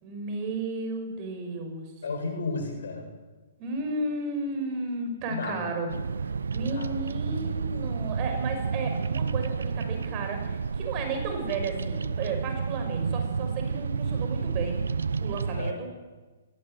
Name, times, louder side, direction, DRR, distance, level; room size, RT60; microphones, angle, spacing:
voice 1, 0.0-1.9 3.6-14.8 15.2-15.9, right 3 dB, 30° right, 5 dB, 6.0 m, -34 dB
voice 2, 2.0-3.1 5.3-5.7 6.5-6.9 15.6-15.8, left 3 dB, 65° left, 3 dB, 7.6 m, -33 dB
Bird vocalization bird call bird song, 5.9-15.7, right 5 dB, 70° right, 0.8 m, -30 dB
20.0 x 17.5 x 9.2 m, 1.3 s
figure-of-eight pair, 120°, 0 cm